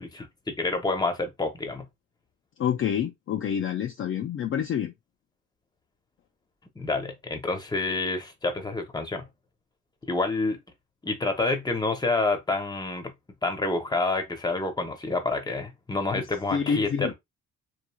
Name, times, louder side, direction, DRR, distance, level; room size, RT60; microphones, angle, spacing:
voice 1, 0.0-1.9 6.8-9.3 10.1-10.6 11.0-13.1 13.4-17.1, left 3 dB, 15° left, 0.8 m, -28 dB
voice 2, 2.6-4.9 16.2-16.3 16.5-17.1, left 8 dB, 45° left, 0.4 m, -27 dB
3.1 x 2.3 x 2.3 m
cardioid pair, 90°, 30 cm